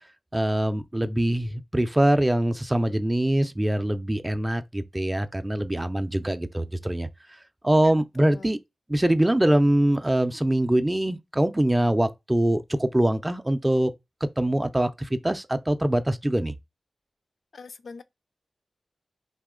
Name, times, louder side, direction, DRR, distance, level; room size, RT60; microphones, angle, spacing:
voice 1, 0.3-7.1 7.6-8.6 8.9-13.9 14.2-16.5, right 1 dB, 15° right, 0.4 m, -23 dB
voice 2, 7.7-8.6 17.5-18.0, left 4 dB, 75° left, 0.4 m, -44 dB
4.0 x 2.9 x 3.7 m
wide cardioid pair, 75°, 0 cm